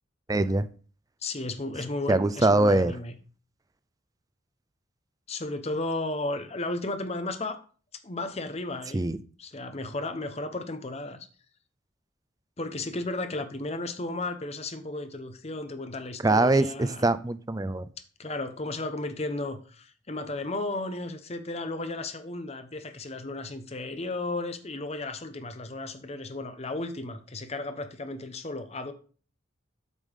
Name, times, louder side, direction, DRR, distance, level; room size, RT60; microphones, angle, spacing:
voice 1, 0.3-0.7 2.1-2.9 8.9-9.2 16.2-17.9, right 2 dB, 20° right, 13 dB, 0.5 m, -23 dB
voice 2, 1.2-3.1 5.3-7.6 8.0-9.1 9.4-11.3 12.6-17.1 18.2-28.9, left 2 dB, 30° left, 9 dB, 1.0 m, -34 dB
8.3 x 5.4 x 5.5 m, 0.40 s
head